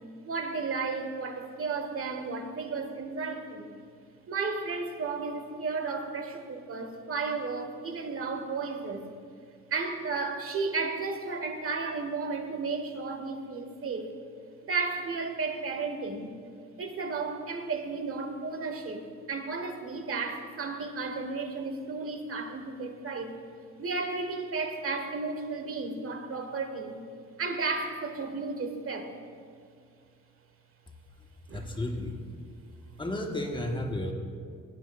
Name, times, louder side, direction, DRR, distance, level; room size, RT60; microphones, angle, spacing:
voice 1, 0.2-3.7 4.3-9.1 9.7-14.1 14.6-16.3 16.8-23.3 23.8-27.0 27.4-29.1 31.5-31.8, right 4 dB, 50° right, 6 dB, 1.3 m, -33 dB
voice 2, 31.5-32.2 33.0-34.1, left 1 dB, 15° left, 2 dB, 1.2 m, -32 dB
18.0 x 9.3 x 2.4 m, 2.2 s
cardioid pair, 90°, 30 cm